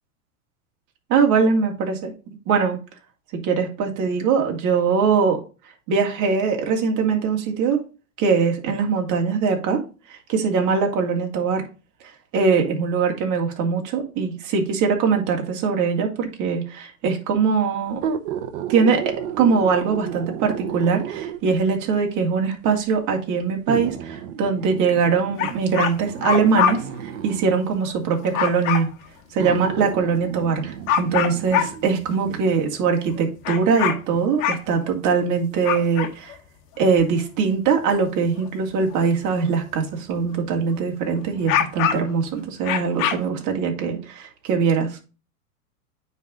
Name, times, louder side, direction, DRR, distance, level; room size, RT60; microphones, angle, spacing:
voice 1, 1.1-2.8 3.3-5.4 5.9-7.8 8.2-9.8 10.1-11.7 12.0-18.0 18.7-19.0 19.4-28.9 29.3-36.4 36.8-45.0, right 5 dB, 40° right, 2 dB, 2.7 m, -22 dB
sound 1, 17.9-21.6 22.5-22.6 23.7-27.6 28.6-28.7 29.4-32.0 32.5-32.6, right 8 dB, 60° right, 1.2 m, -32 dB
sound 2, 25.4-26.7 27.8-28.8 29.9-30.0 30.4-30.5 30.9-31.9 32.5-33.2 33.4-35.2 35.6-36.3 36.8-37.0 37.9-38.5 38.9-39.0 41.3-42.2 42.6-43.2, left 9 dB, 65° left, 1.8 m, -23 dB
9.2 x 4.2 x 5.0 m, 0.32 s
hypercardioid pair, 110°, 44 cm